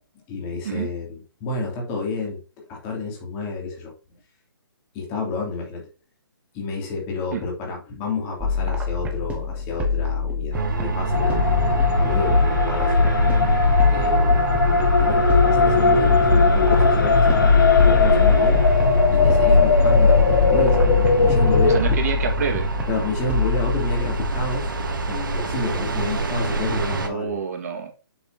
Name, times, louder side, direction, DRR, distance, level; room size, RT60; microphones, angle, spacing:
voice 1, 0.3-3.9 4.9-5.9 6.5-13.3 13.9-14.4 15.0-18.6 19.1-21.9 22.9-24.7 25.1-27.4, left 3 dB, 25° left, -1 dB, 2.9 m, -29 dB
sound 1, 8.4-26.0, left 4 dB, 10° right, 1.1 m, -27 dB
sound 2, 10.5-27.1, right 4 dB, 60° right, 1.5 m, -27 dB
sound 3, 11.1-21.8, left 4 dB, 60° left, 1.4 m, -17 dB
voice 2, 21.6-22.7 27.1-27.9, right 6 dB, 45° right, 3 dB, 2.0 m, -27 dB
7.7 x 6.5 x 2.9 m, 0.33 s
figure-of-eight pair, 135°, 12 cm